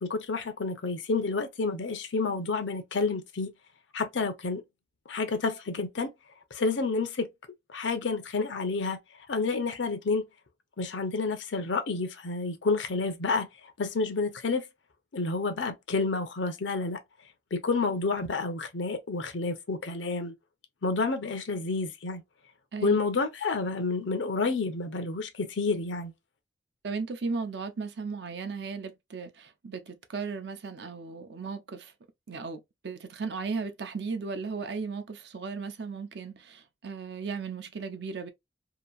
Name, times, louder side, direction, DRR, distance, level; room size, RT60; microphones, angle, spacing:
voice 1, 0.0-3.5 3.9-4.6 5.1-6.1 6.5-7.3 7.7-9.0 9.3-10.3 10.8-13.5 13.8-14.6 15.1-17.0 17.5-20.3 20.8-22.2 22.8-26.1, left 3 dB, 80° left, 0.7 m, -29 dB
voice 2, 26.8-31.9 32.3-38.3, right 4 dB, 65° right, 0.5 m, -36 dB
2.9 x 2.6 x 2.3 m
head